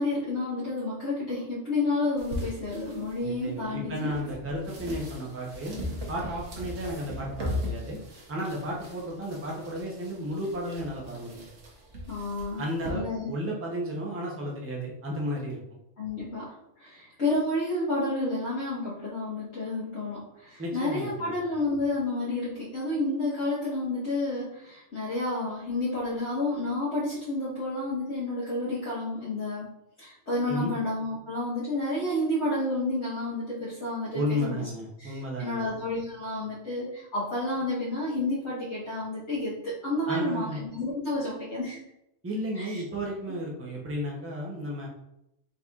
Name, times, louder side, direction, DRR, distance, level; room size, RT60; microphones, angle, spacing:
voice 1, 0.0-4.2 12.1-12.6 12.9-13.3 16.0-29.7 30.0-34.7 35.0-41.8 42.5-42.8, left 2 dB, 65° left, -10 dB, 1.5 m, -30 dB
sound 1, 2.2-12.9, left 1 dB, 70° right, 1.3 m, -39 dB
voice 2, 3.2-5.8 6.1-8.0 8.3-11.4 12.6-15.6 20.6-21.4 30.5-30.7 34.1-35.7 40.1-40.6 42.2-44.9, equal, 15° right, -3 dB, 0.7 m, -33 dB
4.2 x 4.1 x 2.4 m, 0.82 s
omnidirectional pair, 1.3 m